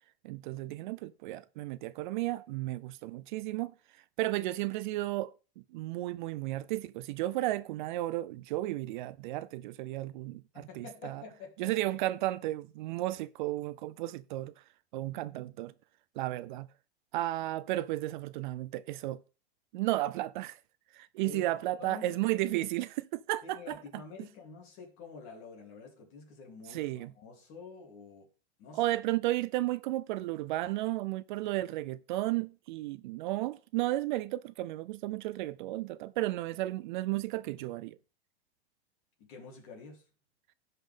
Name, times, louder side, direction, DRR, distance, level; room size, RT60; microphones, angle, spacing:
voice 1, 0.2-3.7 4.2-11.2 11.6-14.5 14.9-15.7 16.2-16.7 17.1-19.2 19.7-20.6 20.9-23.6 26.7-27.1 28.7-38.0, right 16 dB, 50° right, 0.4 m, -33 dB
voice 2, 10.5-11.7 21.2-22.2 23.4-28.3 28.6-28.9 39.2-40.1, left 4 dB, 40° left, 3.3 m, -48 dB
16.0 x 5.6 x 3.6 m
supercardioid pair, 150°, 32 cm